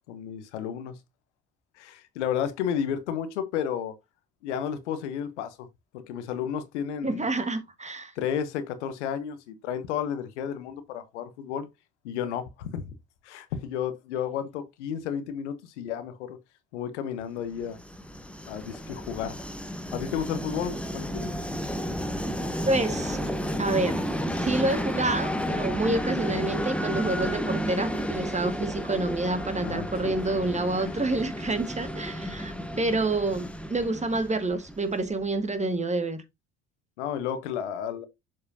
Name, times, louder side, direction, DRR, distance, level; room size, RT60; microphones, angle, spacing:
voice 1, 0.1-0.9 1.8-3.9 4.4-5.7 5.9-7.3 8.2-11.7 12.0-12.9 13.2-16.4 16.7-17.8 18.5-19.4 19.9-21.3 29.6-30.1 30.8-30.9 37.0-38.1, left 8 dB, 80° left, 1.0 m, -32 dB
voice 2, 7.0-8.1 22.7-23.3 23.6-24.0 24.3-36.2, right 2 dB, 20° right, 1.4 m, -28 dB
Train, 17.5-35.3, equal, 5° left, 1.2 m, -32 dB
7.3 x 4.8 x 2.7 m
hypercardioid pair, 55°, 34 cm